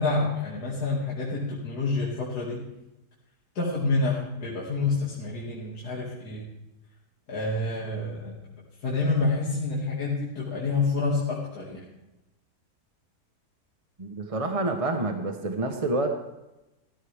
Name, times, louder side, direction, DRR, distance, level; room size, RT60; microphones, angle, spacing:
voice 1, 0.0-2.6 3.5-6.4 7.3-8.4 8.8-11.8, left 3 dB, 70° left, -6 dB, 2.9 m, -28 dB
voice 2, 14.0-16.1, right 2 dB, 25° right, 5 dB, 1.0 m, -28 dB
15.0 x 13.5 x 3.5 m, 0.99 s
omnidirectional pair, 1.7 m